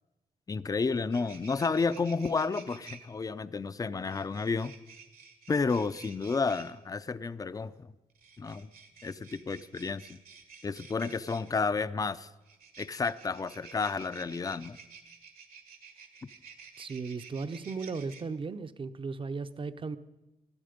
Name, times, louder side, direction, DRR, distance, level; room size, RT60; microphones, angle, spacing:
voice 1, 0.5-4.7 5.5-7.9 8.4-8.7 9.0-10.2 10.6-12.3 12.8-14.8, left 4 dB, 25° left, 14 dB, 0.5 m, -31 dB
sound 1, 0.6-0.7 0.9-3.0 4.1-6.7 8.1-11.5 12.4-18.2, right 6 dB, 80° right, 1.8 m, -52 dB
voice 2, 16.8-20.0, right 4 dB, 35° right, 12 dB, 0.7 m, -36 dB
19.0 x 12.5 x 5.1 m, 1.0 s
cardioid pair, 110°, 15 cm